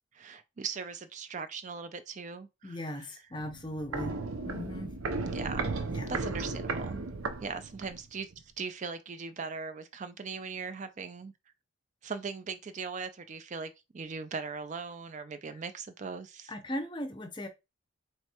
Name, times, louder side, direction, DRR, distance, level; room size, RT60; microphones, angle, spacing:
voice 1, 0.1-3.1 5.2-5.7 6.1-7.0 7.4-11.3 12.0-16.5, right 5 dB, 35° right, 0.3 m, -39 dB
voice 2, 2.6-4.2 4.4-4.9 5.9-6.2 16.5-17.5, left 1 dB, 20° left, 0.6 m, -38 dB
Walk footsteps, 3.3-8.0 8.3-8.4, right 3 dB, 85° right, 0.7 m, -35 dB
4.4 x 3.0 x 2.9 m
head